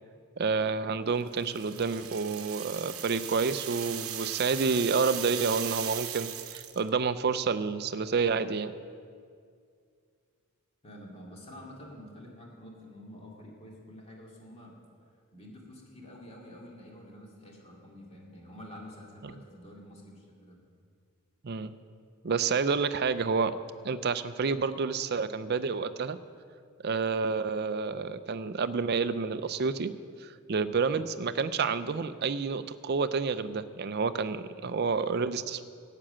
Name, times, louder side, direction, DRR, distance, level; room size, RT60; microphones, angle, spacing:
voice 1, 0.4-8.7 19.2-19.3 21.4-21.7 22.2-23.6 23.8-26.2 26.8-29.9 30.2-35.6, right 5 dB, 45° right, 13 dB, 0.5 m, -29 dB
sound 1, 1.3-6.9, right 11 dB, 70° right, 0.9 m, -38 dB
voice 2, 10.8-14.8 15.3-20.6, left 1 dB, 25° left, -2 dB, 2.3 m, -48 dB
12.5 x 7.6 x 8.7 m, 2.2 s
head